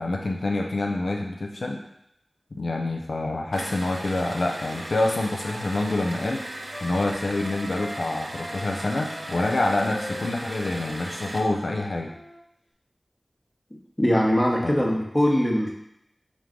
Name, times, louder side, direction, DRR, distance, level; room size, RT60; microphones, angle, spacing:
voice 1, 0.0-1.8 2.5-12.1 14.6-14.9, left 2 dB, 85° left, 1 dB, 0.4 m, -27 dB
sound 1, 3.5-11.5, right 1 dB, 75° right, 0.5 m, -38 dB
Wind instrument woodwind instrument, 4.2-8.0 8.3-12.4, left 1 dB, 50° left, 0.9 m, -41 dB
voice 2, 14.0-15.7, equal, 20° left, -1 dB, 0.8 m, -21 dB
3.6 x 3.0 x 3.6 m, 0.79 s
wide cardioid pair, 55°, 0 cm